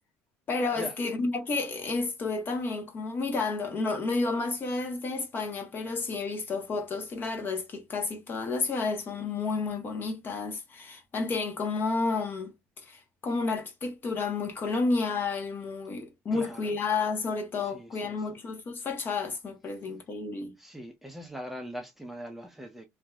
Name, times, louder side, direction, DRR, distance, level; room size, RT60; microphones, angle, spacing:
voice 1, 0.5-12.5 12.8-20.5, left 3 dB, 35° left, 1.1 m, -31 dB
voice 2, 16.3-16.7 17.6-18.4 20.6-22.9, equal, 5° right, 0.6 m, -41 dB
2.8 x 2.6 x 2.3 m
supercardioid pair, 100°, 6 cm